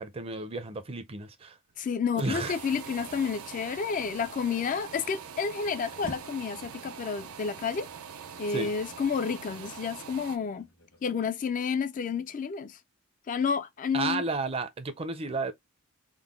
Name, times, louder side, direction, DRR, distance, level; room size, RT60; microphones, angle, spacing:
voice 1, 0.0-1.6 2.2-2.5 8.5-8.7 13.9-15.5, right 3 dB, 25° right, 0.5 m, -32 dB
voice 2, 1.8-7.9 8.4-10.7 11.0-12.8 13.3-14.2, left 6 dB, 35° left, 0.3 m, -30 dB
sound 1, 1.8-10.4, right 7 dB, 85° right, 0.5 m, -44 dB
sound 2, 5.3-11.3, equal, 75° left, 1.3 m, -51 dB
3.7 x 2.1 x 3.6 m
head